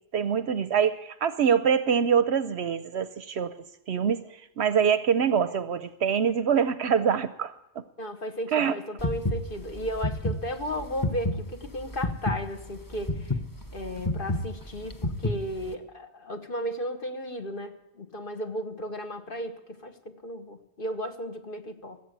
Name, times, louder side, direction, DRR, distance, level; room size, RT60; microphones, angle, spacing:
voice 1, 0.1-3.5 3.9-4.2 4.6-7.5 8.5-8.7, right 7 dB, 60° right, 13 dB, 0.9 m, -24 dB
voice 2, 8.0-13.4 13.7-22.0, equal, 45° left, 5 dB, 1.6 m, -35 dB
sound 1, 9.0-15.7, left 1 dB, 20° left, 0.9 m, -30 dB
18.0 x 8.3 x 8.2 m, 0.90 s
omnidirectional pair, 1.3 m